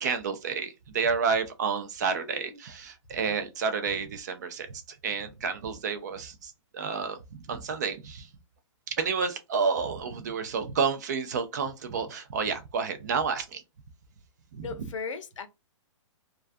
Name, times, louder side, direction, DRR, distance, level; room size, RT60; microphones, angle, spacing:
voice 1, 0.0-8.3 9.0-13.6 14.5-14.6, right 5 dB, 35° right, 0.4 m, -30 dB
voice 2, 2.0-2.6 14.6-15.5, left 5 dB, 70° left, 0.6 m, -38 dB
2.3 x 2.3 x 2.5 m
hypercardioid pair, 165°, 16 cm